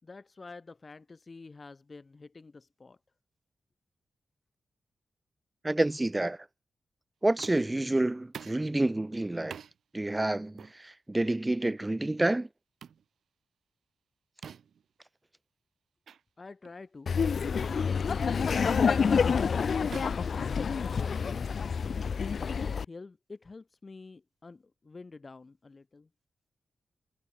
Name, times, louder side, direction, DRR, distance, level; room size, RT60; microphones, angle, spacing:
voice 1, 0.0-3.0 16.4-17.4 17.7-21.5 22.6-26.1, left 3 dB, 30° left, 6.0 m, -48 dB
voice 2, 5.6-6.4 7.2-9.6 9.9-12.5, right 2 dB, 15° right, 0.5 m, -28 dB
sound 1, 7.4-7.8 8.3-8.7 9.5-9.8 10.6-10.8 11.6-11.8 12.8-13.0 14.4-14.8 16.1-16.2 16.6-16.8 17.6-17.8 18.7-19.0 19.9-21.1, right 8 dB, 75° right, 1.9 m, -47 dB
Laughter, 17.1-22.8, left 6 dB, 50° left, 0.7 m, -28 dB
wide cardioid pair, 165°, 0 cm